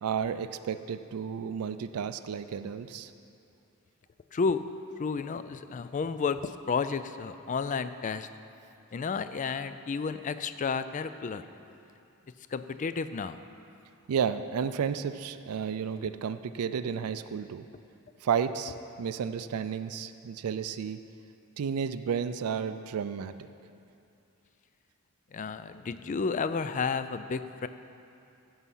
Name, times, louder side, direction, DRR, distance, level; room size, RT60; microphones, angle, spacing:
voice 1, 0.0-3.1 14.1-17.7 18.2-21.0 21.6-23.4, right 7 dB, 85° right, 11 dB, 0.4 m, -32 dB
voice 2, 4.3-4.6 5.0-8.3 8.9-11.4 12.5-13.4 25.3-27.7, left 5 dB, 35° left, 12 dB, 0.3 m, -31 dB
16.0 x 5.6 x 5.6 m, 2.6 s
head